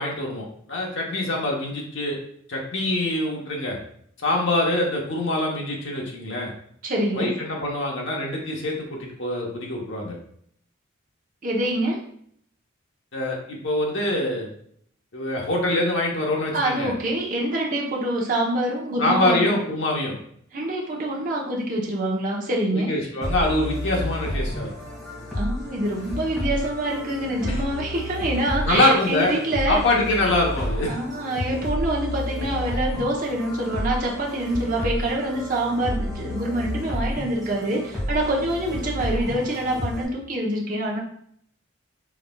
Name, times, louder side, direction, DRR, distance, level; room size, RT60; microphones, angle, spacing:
voice 1, 0.0-2.2 2.5-3.8 4.2-6.5 7.1-10.2 13.1-14.5 15.1-16.9 19.0-20.1 22.7-24.7 27.5-27.6 28.6-29.4 29.7-31.0, left 1 dB, 65° left, -1 dB, 1.0 m, -24 dB
voice 2, 6.8-7.3 11.4-12.0 16.5-19.5 20.5-22.9 25.3-29.8 30.9-41.0, right 1 dB, 40° right, -2 dB, 0.8 m, -26 dB
sound 1, 23.2-40.0, left 1 dB, ahead, 1.7 m, -31 dB
4.7 x 3.4 x 2.3 m, 0.66 s
head